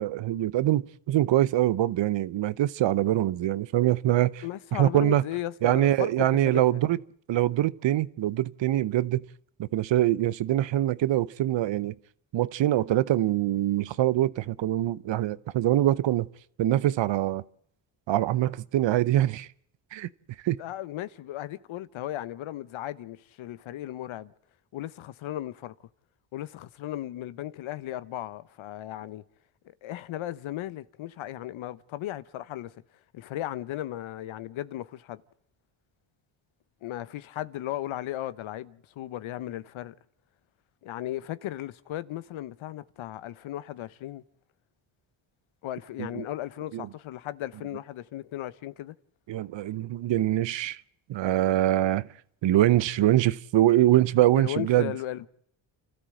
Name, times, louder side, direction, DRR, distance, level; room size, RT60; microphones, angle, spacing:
voice 1, 0.0-4.4 4.7-5.2 5.6-7.0 7.3-9.2 9.6-11.9 12.3-16.3 16.6-17.4 18.1-19.5 19.9-20.1 20.4-20.6 46.0-46.3 46.7-46.9 49.3-50.8 51.1-52.1 52.4-54.9, right 13 dB, 65° right, 0.8 m, -24 dB
voice 2, 4.4-6.8 20.6-24.3 24.7-25.7 26.3-29.2 29.8-32.7 33.1-35.2 36.8-40.0 40.8-44.2 45.6-48.9 54.4-55.3, left 13 dB, 75° left, 1.0 m, -36 dB
29.5 x 13.0 x 7.7 m
cardioid pair, 75°, 48 cm